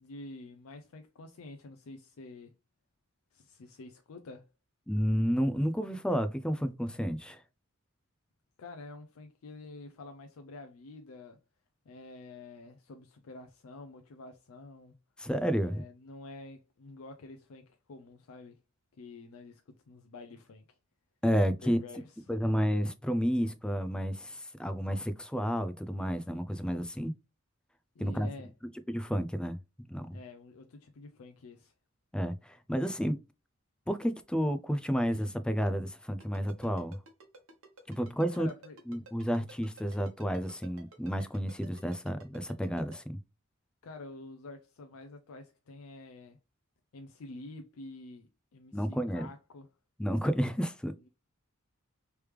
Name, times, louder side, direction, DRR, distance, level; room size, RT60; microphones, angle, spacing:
voice 1, 0.0-2.5 3.3-4.5 8.6-11.4 11.9-14.9 15.6-18.6 19.0-20.8 21.6-22.4 28.0-28.5 30.1-31.7 38.3-38.8 43.8-46.4 46.9-49.7, left 3 dB, 80° left, 0.5 m, -48 dB
voice 2, 4.9-7.4 15.2-15.9 21.2-21.8 22.3-27.1 28.0-28.3 28.9-29.6 29.9-30.2 32.1-33.2 33.9-37.0 37.9-38.5 38.9-43.2 48.7-49.3 50.0-50.9, equal, 5° left, 0.3 m, -31 dB
Ringtone, 36.2-43.0, right 3 dB, 75° right, 1.1 m, -52 dB
3.3 x 3.1 x 3.2 m
head